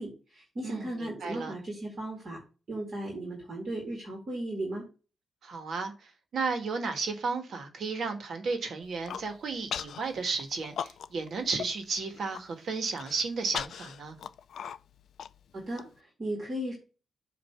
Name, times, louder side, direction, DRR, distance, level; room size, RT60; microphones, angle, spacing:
voice 1, 0.0-2.4 2.7-4.9 15.5-16.7, right 1 dB, 40° right, 2.0 m, -36 dB
voice 2, 0.6-1.5 5.4-14.2, right 4 dB, 60° right, 1.4 m, -33 dB
Human voice, 8.8-9.3 9.7-10.0 10.4-11.3 11.6-11.7 12.1-12.4 12.9-15.8, left 8 dB, 70° left, 0.4 m, -38 dB
7.6 x 2.6 x 5.8 m
wide cardioid pair, 155°, 0 cm